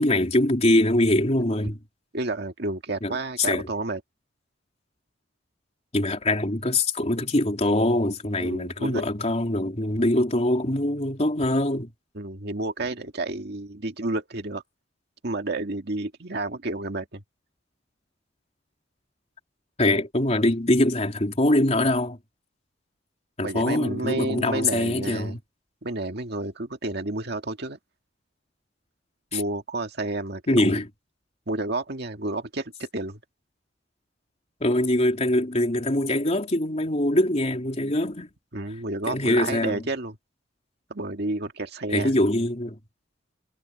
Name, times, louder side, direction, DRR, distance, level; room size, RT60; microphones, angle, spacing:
voice 1, 0.0-1.8 3.0-3.1 3.4-3.7 5.9-11.9 19.8-22.2 23.4-25.4 29.3-29.4 30.5-30.9 34.6-38.3 39.1-39.8 41.9-42.8, left 1 dB, 35° left, 3.4 m, -23 dB
voice 2, 2.1-4.0 8.4-9.0 12.1-14.6 15.2-17.2 23.4-25.4 25.8-27.8 29.3-30.8 31.5-33.2 38.5-40.2 40.9-42.1, right 2 dB, 60° right, 2.0 m, -30 dB
head